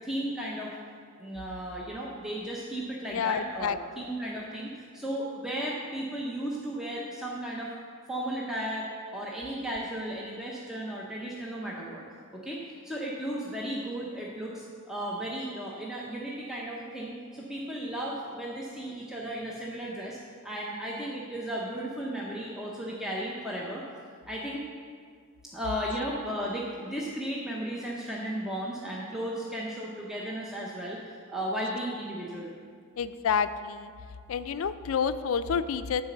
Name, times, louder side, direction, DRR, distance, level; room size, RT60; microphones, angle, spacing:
voice 1, 0.0-0.7 1.2-7.7 8.1-12.0 12.3-12.6 12.8-23.8 24.3-24.6 25.5-32.5, right 1 dB, ahead, -5 dB, 0.7 m, -35 dB
voice 2, 3.1-3.8 33.0-33.9 34.3-36.0, left 6 dB, 75° left, 12 dB, 0.4 m, -29 dB
11.0 x 4.0 x 6.5 m, 2.1 s
head